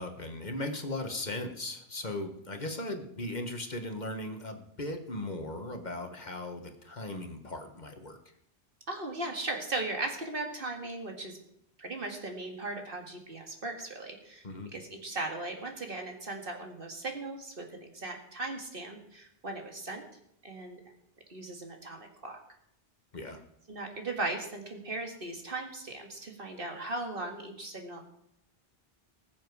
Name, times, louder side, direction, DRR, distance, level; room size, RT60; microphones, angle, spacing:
voice 1, 0.0-8.2 14.4-14.7 23.1-23.4, left 1 dB, 45° left, 5 dB, 1.4 m, -38 dB
voice 2, 8.9-11.4 11.8-14.4 14.7-20.1 20.4-20.8 21.3-22.4 23.7-28.0, right 2 dB, 60° right, 2 dB, 2.1 m, -38 dB
20.0 x 7.4 x 4.7 m, 0.76 s
omnidirectional pair, 1.1 m